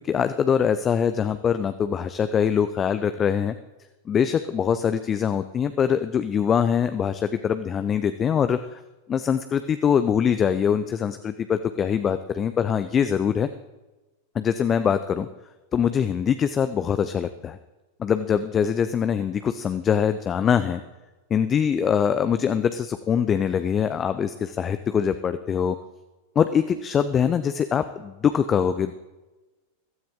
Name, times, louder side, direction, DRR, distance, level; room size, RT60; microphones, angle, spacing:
voice 1, 0.0-3.5 4.1-8.8 9.1-13.5 14.3-15.3 15.7-17.6 18.0-20.8 21.3-25.8 26.4-29.0, left 7 dB, 25° left, 11 dB, 0.5 m, -23 dB
15.5 x 13.0 x 3.8 m, 1.1 s
figure-of-eight pair, 90°, 0 cm